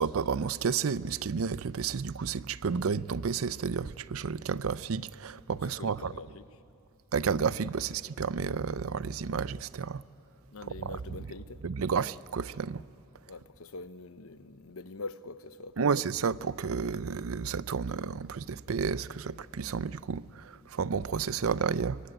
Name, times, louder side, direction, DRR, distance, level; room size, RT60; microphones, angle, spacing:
voice 1, 0.0-6.1 7.1-10.0 11.6-12.8 15.8-22.0, right 6 dB, 85° right, 0.5 m, -31 dB
voice 2, 5.6-6.5 10.5-11.6 13.3-16.0, left 3 dB, 90° left, 1.0 m, -44 dB
24.5 x 23.5 x 9.1 m
head